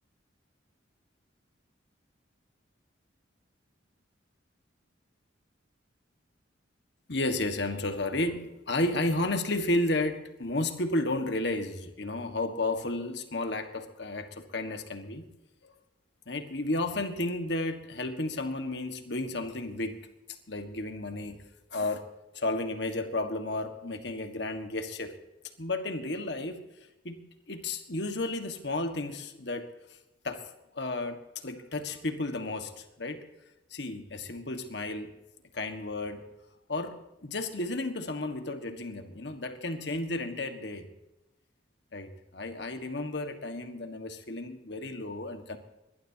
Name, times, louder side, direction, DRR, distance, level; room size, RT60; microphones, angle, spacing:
voice 1, 7.1-15.3 15.6-15.7 16.3-20.0 20.5-21.4 21.7-22.0 22.3-25.1 25.6-26.6 27.0-27.2 27.5-29.7 30.2-30.4 30.7-33.2 33.7-35.1 35.5-36.2 36.7-37.0 37.2-40.9 41.9-45.6, left 2 dB, 60° left, 6 dB, 1.6 m, -32 dB
22.0 x 19.5 x 2.9 m, 0.97 s
head